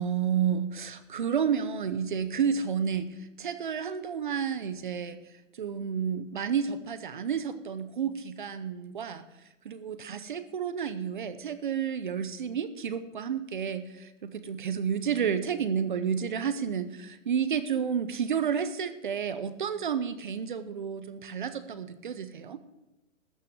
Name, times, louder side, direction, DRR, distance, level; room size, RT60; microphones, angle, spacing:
voice 1, 0.0-5.2 5.6-9.2 9.6-22.6, right 7 dB, 40° right, 13 dB, 0.7 m, -31 dB
13.5 x 6.3 x 8.0 m, 0.98 s
hypercardioid pair, 180°, 38 cm